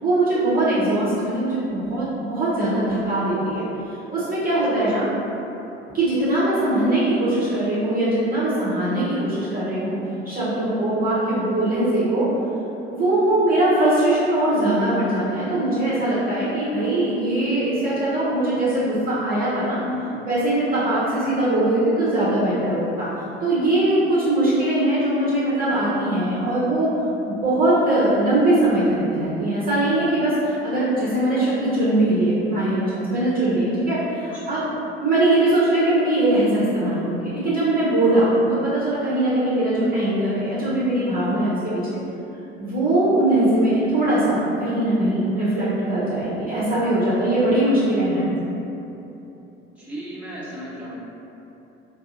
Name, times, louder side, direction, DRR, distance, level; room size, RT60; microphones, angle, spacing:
voice 1, 0.0-3.6 3.9-5.1 5.9-10.0 10.2-12.3 12.9-19.8 20.2-23.1 23.4-26.9 27.3-34.7 35.0-41.8 42.6-48.3, right 1 dB, 30° right, -10 dB, 1.0 m, -21 dB
voice 2, 4.7-5.0 19.8-20.2 34.3-34.6 49.7-50.9, left 1 dB, 5° right, -10 dB, 1.1 m, -35 dB
4.6 x 2.6 x 2.6 m, 3.0 s
figure-of-eight pair, 55°, 31 cm